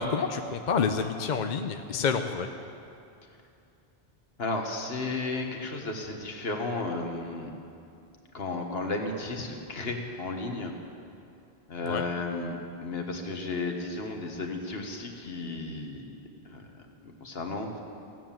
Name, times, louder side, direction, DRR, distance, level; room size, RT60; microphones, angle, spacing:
voice 1, 0.0-2.5 11.9-12.0, left 5 dB, 50° left, 6 dB, 0.7 m, -28 dB
voice 2, 4.4-7.5 8.3-10.7 11.7-16.0 16.4-16.7 17.2-17.8, left 3 dB, 65° left, 3 dB, 1.6 m, -33 dB
16.0 x 9.4 x 7.4 m, 2.6 s
omnidirectional pair, 1.1 m